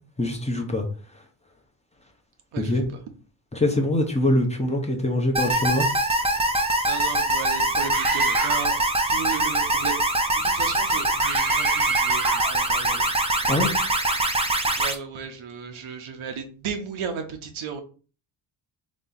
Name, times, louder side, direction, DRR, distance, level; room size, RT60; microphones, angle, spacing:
voice 1, 0.2-0.8 2.6-2.9 3.5-5.9 13.5-13.7, left 1 dB, 15° left, 2 dB, 0.9 m, -23 dB
voice 2, 2.5-2.8 6.5-13.1 14.8-17.8, right 6 dB, 80° right, 4 dB, 1.0 m, -35 dB
sound 1, 5.4-15.0, right 2 dB, 15° right, 0.5 m, -23 dB
Screaming, 7.9-8.8 11.2-12.6, right 5 dB, 45° right, 0.8 m, -28 dB
3.3 x 3.1 x 3.9 m, 0.38 s
cardioid pair, 100°, 48 cm